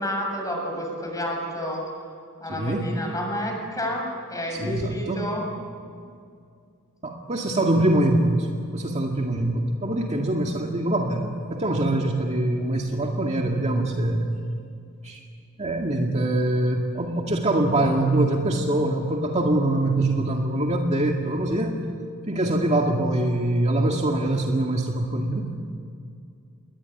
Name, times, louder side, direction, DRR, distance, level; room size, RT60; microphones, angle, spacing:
voice 1, 0.0-1.8 2.4-5.5, equal, 15° left, 1 dB, 7.4 m, -30 dB
voice 2, 2.5-2.9 4.6-5.2 7.0-8.5 8.7-14.4 15.0-15.2 15.6-21.8 22.3-25.5, right 1 dB, 30° right, 1 dB, 2.1 m, -23 dB
28.5 x 22.0 x 9.3 m, 2.3 s
head